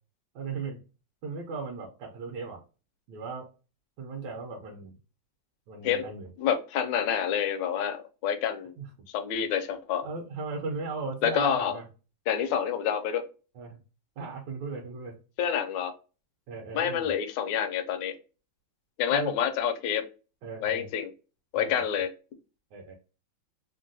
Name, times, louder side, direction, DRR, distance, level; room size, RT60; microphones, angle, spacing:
voice 1, 0.3-0.8 1.2-2.6 3.1-3.5 4.0-5.0 5.7-6.3 8.8-8.9 10.0-11.9 13.5-13.8 14.2-15.2 16.5-17.1 19.1-19.3 20.4-20.9 21.5-21.8 22.7-22.9, right 4 dB, 70° right, 0 dB, 1.2 m, -37 dB
voice 2, 6.4-8.7 9.1-10.1 11.2-11.7 12.3-13.2 15.4-15.9 16.7-18.1 19.0-20.0 20.6-21.1 21.5-22.1, left 8 dB, 75° left, 9 dB, 1.2 m, -28 dB
3.3 x 2.2 x 2.6 m, 0.33 s
omnidirectional pair, 2.2 m